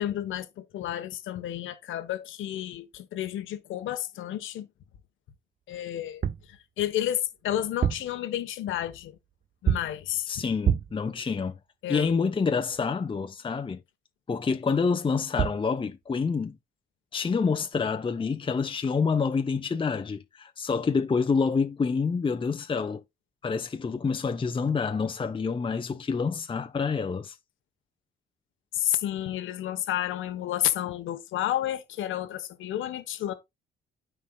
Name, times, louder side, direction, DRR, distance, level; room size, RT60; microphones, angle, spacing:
voice 1, 0.0-4.7 5.7-9.1 9.6-10.4 11.8-12.1 28.7-33.3, left 12 dB, 80° left, 1.2 m, -31 dB
sound 1, 6.0-6.5 7.6-8.2 9.7-10.0 10.6-11.1 15.1-15.2 15.4-15.7, right 9 dB, 45° right, 0.7 m, -27 dB
voice 2, 10.3-11.6 11.9-13.8 14.3-16.6 17.1-23.0 23.4-27.4, left 5 dB, 25° left, 0.8 m, -27 dB
13.0 x 4.7 x 2.3 m
cardioid pair, 90°, 20 cm